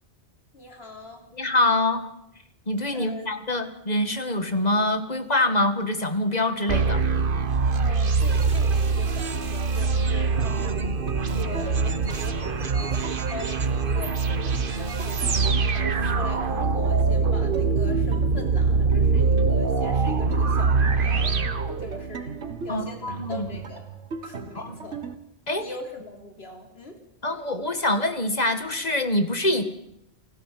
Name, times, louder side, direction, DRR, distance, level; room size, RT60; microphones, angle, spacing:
voice 1, 0.5-1.2 2.9-3.3 7.7-11.0 11.3-21.4 21.8-23.9 24.2-25.0 25.6-27.0, left 1 dB, 65° left, 3 dB, 3.6 m, -41 dB
voice 2, 1.3-2.1 2.7-7.0 22.7-23.5 24.6-24.8 25.5-25.7 27.2-29.6, left 1 dB, 40° left, 9 dB, 2.0 m, -25 dB
sound 1, 6.7-22.3, right 4 dB, 50° right, 1.3 m, -23 dB
sound 2, 10.4-25.1, right 5 dB, 90° right, 1.9 m, -37 dB
29.0 x 15.5 x 7.8 m, 0.79 s
omnidirectional pair, 1.1 m